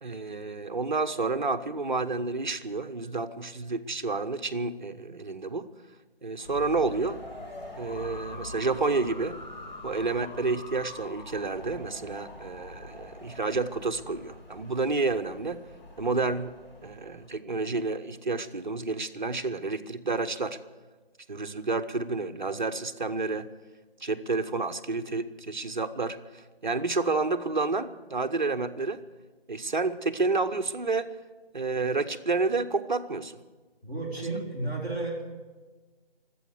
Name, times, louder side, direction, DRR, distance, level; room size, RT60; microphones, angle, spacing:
voice 1, 0.0-5.7 6.2-7.2 7.8-9.4 9.8-15.6 16.0-16.5 16.8-20.6 21.3-23.5 24.0-29.0 29.5-31.1 31.5-33.4, right 3 dB, 50° right, 10 dB, 0.9 m, -30 dB
sound 1, 6.4-17.3, left 2 dB, 45° left, 7.1 m, -44 dB
voice 2, 33.8-35.2, right 2 dB, 5° left, -8 dB, 2.7 m, -32 dB
24.5 x 8.6 x 6.6 m, 1.3 s
figure-of-eight pair, 160°, 31 cm